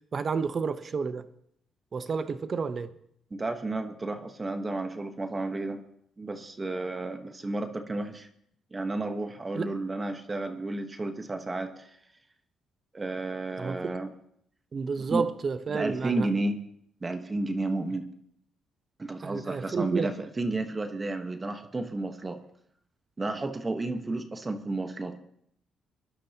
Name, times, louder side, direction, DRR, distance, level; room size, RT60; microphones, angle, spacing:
voice 1, 0.1-1.3 1.9-2.9 9.5-9.7 13.6-14.0 14.7-16.3 19.2-20.1, right 5 dB, 45° right, 11 dB, 0.9 m, -30 dB
voice 2, 3.3-5.8 6.2-8.3 8.7-11.9 12.9-14.1 15.0-15.2 15.7-16.6 17.0-18.0 19.0-22.4 23.2-25.2, right 2 dB, 25° right, 7 dB, 1.2 m, -32 dB
23.5 x 11.5 x 2.9 m, 0.70 s
cardioid pair, 90°, 0 cm